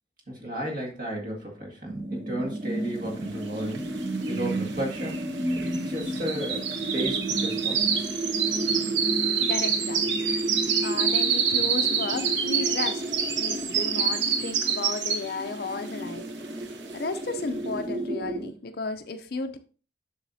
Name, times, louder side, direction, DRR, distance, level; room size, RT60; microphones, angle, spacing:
voice 1, 0.3-3.9 4.3-5.3 5.5-8.0, equal, 45° right, -1 dB, 2.0 m, -33 dB
sound 1, 1.9-18.5, right 1 dB, 25° right, 0.5 m, -33 dB
sound 2, 3.7-3.8 4.0-15.5 15.9-16.2 16.6-16.7, right 6 dB, 85° right, 1.0 m, -27 dB
voice 2, 9.4-10.3 10.8-16.3 16.9-19.6, left 3 dB, 55° left, 8 dB, 0.5 m, -34 dB
7.2 x 6.3 x 2.7 m, 0.37 s
head